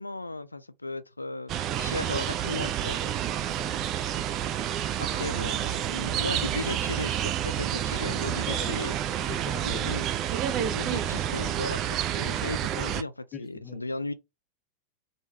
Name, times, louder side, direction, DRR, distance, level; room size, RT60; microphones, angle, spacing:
voice 1, 0.0-3.0 5.0-9.0 9.6-10.1 10.6-14.1, left 2 dB, 80° left, 0.4 m, -36 dB
sound 1, 1.5-13.0, right 11 dB, 35° right, 0.3 m, -29 dB
voice 2, 3.4-3.8 8.2-8.8 9.3-9.9 13.3-13.8, left 4 dB, 20° left, 0.7 m, -41 dB
3.2 x 2.2 x 3.3 m
figure-of-eight pair, 90°, 0 cm